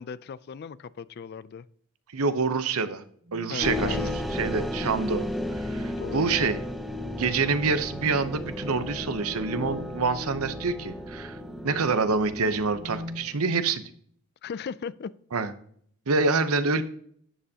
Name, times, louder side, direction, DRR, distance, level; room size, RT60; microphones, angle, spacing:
voice 1, 0.0-1.7 3.5-4.2 6.0-6.3 14.4-15.1, left 6 dB, 45° left, 0.3 m, -37 dB
voice 2, 2.1-3.0 3.3-5.2 5.5-6.6 7.2-11.4 11.6-13.8 15.3-15.5 16.1-16.8, right 4 dB, 80° right, 0.8 m, -26 dB
sound 1, 3.2-3.7 5.0-5.5 7.7-11.9 12.6-13.3, left 1 dB, 30° right, 0.9 m, -45 dB
sound 2, 3.6-13.3, left 1 dB, ahead, 0.6 m, -34 dB
11.0 x 7.8 x 2.8 m
head